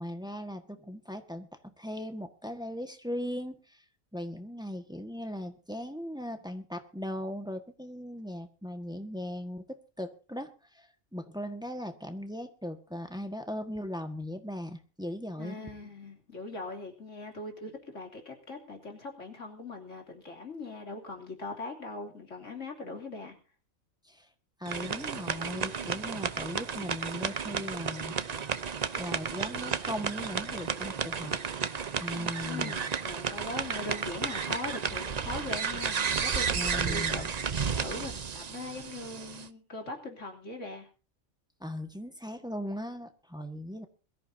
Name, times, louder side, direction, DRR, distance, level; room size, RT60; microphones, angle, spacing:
voice 1, 0.0-1.5 1.8-3.8 4.1-15.6 24.0-24.3 24.6-28.2 28.9-31.4 32.0-32.7 36.5-37.3 41.6-43.9, equal, 5° right, 6 dB, 1.4 m, -38 dB
voice 2, 15.4-23.4 32.2-40.9, left 2 dB, 60° left, 3 dB, 3.4 m, -41 dB
sound 1, 24.6-39.5, right 6 dB, 40° right, 0.6 m, -33 dB
22.0 x 14.0 x 2.8 m, 0.35 s
omnidirectional pair, 1.5 m